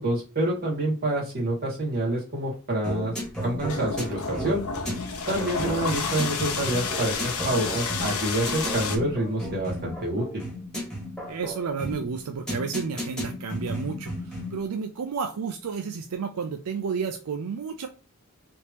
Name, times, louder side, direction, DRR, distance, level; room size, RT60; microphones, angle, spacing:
voice 1, 0.0-3.1 3.4-4.6 5.3-10.4, right 1 dB, 45° right, -3 dB, 1.8 m, -27 dB
sound 1, 2.8-14.7, equal, 5° left, 1.5 m, -34 dB
sound 2, 3.2-9.0, left 5 dB, 70° left, 0.8 m, -31 dB
voice 2, 5.3-5.8 11.3-17.9, right 5 dB, 85° right, 6 dB, 0.4 m, -32 dB
3.5 x 3.0 x 2.8 m, 0.36 s
head